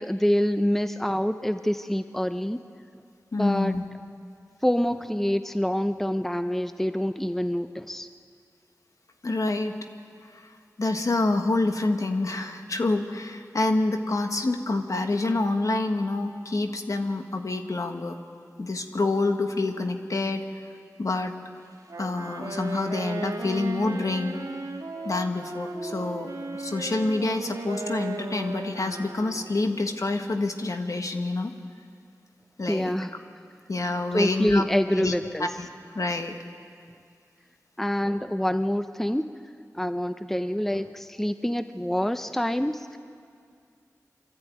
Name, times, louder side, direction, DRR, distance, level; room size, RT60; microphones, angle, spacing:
voice 1, 0.0-2.6 3.3-3.7 4.6-8.1 32.7-33.1 34.1-35.5 37.8-39.2 39.7-43.0, equal, 5° left, 10 dB, 0.7 m, -26 dB
voice 2, 3.3-3.8 9.2-9.7 10.8-18.2 18.6-20.4 21.0-21.3 22.0-24.3 25.0-31.5 32.6-32.9 33.7-34.6 35.0-35.1 35.4-35.7 35.9-36.4, left 2 dB, 60° left, 5 dB, 1.6 m, -27 dB
Wind instrument woodwind instrument, 21.8-29.7, right 2 dB, 80° right, 2.6 m, -35 dB
24.0 x 13.5 x 9.3 m, 2.3 s
cardioid pair, 50°, 6 cm